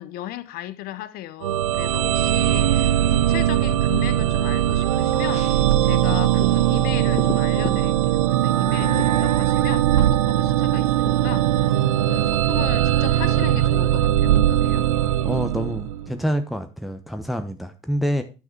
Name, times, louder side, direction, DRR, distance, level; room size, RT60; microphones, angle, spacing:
voice 1, 0.0-5.5 5.8-11.7 12.1-14.9, left 13 dB, 65° left, 0.8 m, -36 dB
sound 1, 1.4-16.1, right 12 dB, 85° right, 0.4 m, -20 dB
sound 2, 5.3-17.0 17.3-17.4, left 6 dB, 40° left, 1.3 m, -41 dB
voice 2, 15.2-18.2, equal, ahead, 1.0 m, -26 dB
9.7 x 5.8 x 4.5 m
hypercardioid pair, 60°, 17 cm